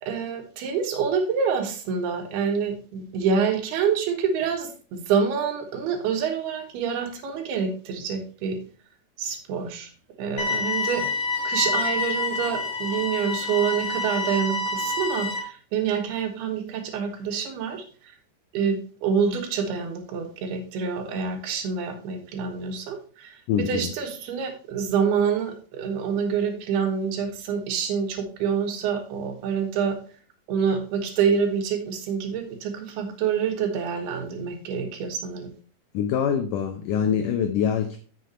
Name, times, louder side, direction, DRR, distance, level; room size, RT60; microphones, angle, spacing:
voice 1, 0.0-8.6 9.2-9.9 10.2-11.1 11.4-17.8 18.5-23.4 23.7-30.0 30.5-35.5, right 6 dB, 80° right, 4 dB, 3.2 m, -27 dB
sound 1, 10.4-15.4, left 3 dB, 50° left, 1.7 m, -27 dB
voice 2, 23.5-23.9 35.9-38.0, left 8 dB, 90° left, 7 dB, 1.8 m, -24 dB
7.8 x 6.7 x 4.3 m, 0.41 s
omnidirectional pair, 4.6 m